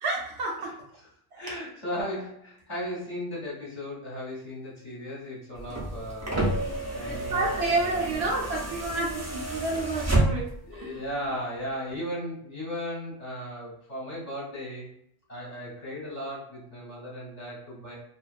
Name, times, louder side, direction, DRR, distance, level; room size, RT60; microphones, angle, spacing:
voice 1, 0.0-0.8 1.3-1.4 7.1-11.0, right 2 dB, 70° right, -2 dB, 1.0 m, -30 dB
voice 2, 1.3-6.5 6.9-7.7 8.0-8.2 9.4-9.8 10.6-14.9 15.3-18.0, equal, 40° left, -6 dB, 1.0 m, -36 dB
sound 1, 5.6-10.7 11.9-12.0, right 2 dB, 20° right, 0.4 m, -30 dB
2.4 x 2.3 x 2.3 m, 0.71 s
omnidirectional pair, 1.1 m